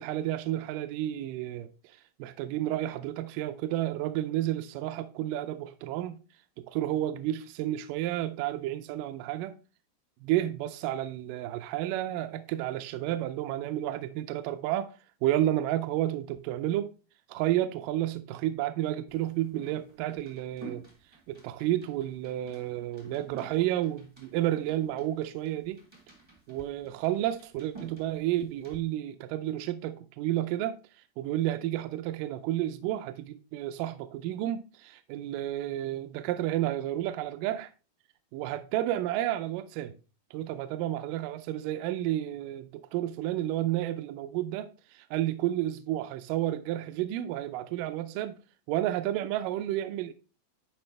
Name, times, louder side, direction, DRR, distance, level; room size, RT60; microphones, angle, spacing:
voice 1, 0.0-6.2 6.6-9.6 10.2-14.9 15.2-16.9 17.3-20.8 21.3-25.8 26.5-30.8 31.2-37.7 38.3-39.9 40.3-48.4 48.7-50.1, right 13 dB, 80° right, 2.1 m, -31 dB
sound 1, 19.1-28.8, right 3 dB, 15° right, 0.8 m, -51 dB
10.5 x 4.7 x 3.3 m
omnidirectional pair, 4.1 m